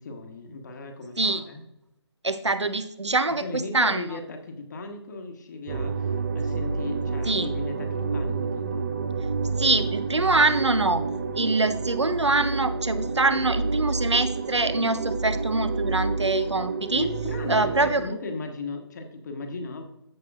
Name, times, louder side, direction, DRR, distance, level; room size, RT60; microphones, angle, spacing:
voice 1, 0.0-1.6 3.3-8.9 16.9-19.8, left 3 dB, 40° left, 4 dB, 1.2 m, -37 dB
voice 2, 2.2-4.0 7.3-7.5 9.6-11.0 11.4-17.1 17.5-18.1, right 3 dB, 80° right, 13 dB, 0.7 m, -24 dB
sound 1, 5.7-17.9, right 4 dB, 30° right, 0.4 m, -29 dB
14.5 x 4.9 x 2.4 m, 0.83 s
figure-of-eight pair, 140°, 15 cm